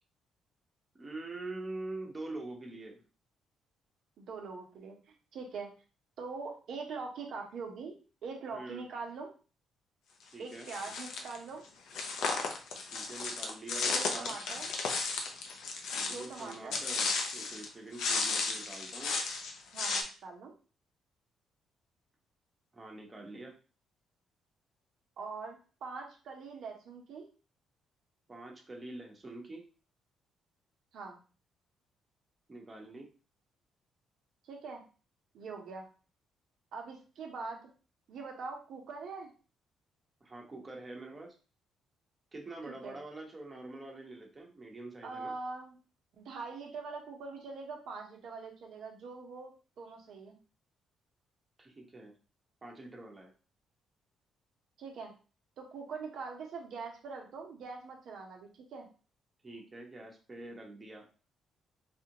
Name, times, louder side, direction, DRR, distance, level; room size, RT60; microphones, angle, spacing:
voice 1, 0.9-3.0 8.5-8.8 10.3-10.7 12.9-14.5 15.9-19.2 22.7-23.5 28.3-29.6 32.5-33.1 40.2-41.4 42.3-45.3 51.6-52.1 52.6-53.3 59.4-61.1, right 2 dB, 25° right, 0 dB, 1.1 m, -45 dB
voice 2, 4.2-5.7 6.2-9.3 10.4-11.6 13.9-14.7 16.0-16.8 19.7-20.5 25.2-27.3 30.9-31.2 34.4-34.8 35.3-35.9 36.7-37.7 38.1-39.3 42.7-42.9 45.0-45.8 46.1-50.4 54.8-55.1 55.6-58.9, right 4 dB, 70° right, 1 dB, 1.0 m, -43 dB
sound 1, 10.6-11.4 11.9-17.7 17.9-20.0, left 4 dB, 80° left, 0.7 m, -34 dB
4.1 x 2.5 x 2.9 m, 0.36 s
cardioid pair, 90°, 0 cm